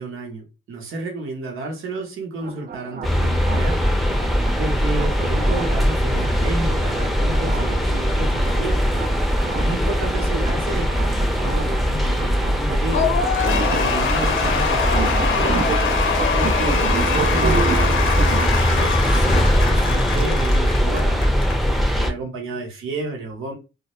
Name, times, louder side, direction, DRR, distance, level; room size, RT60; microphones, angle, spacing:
voice 1, 0.0-3.9 4.6-8.9 9.6-13.1 13.6-15.7 16.3-23.6, right 2 dB, 85° right, 0.8 m, -31 dB
sound 1, 2.4-18.5, right 6 dB, 50° right, 0.4 m, -31 dB
sound 2, 3.0-22.1, equal, ahead, 0.6 m, -21 dB
Cheering / Applause / Crowd, 12.9-21.6, left 6 dB, 70° left, 0.6 m, -24 dB
2.1 x 2.1 x 2.9 m
supercardioid pair, 45°, 21 cm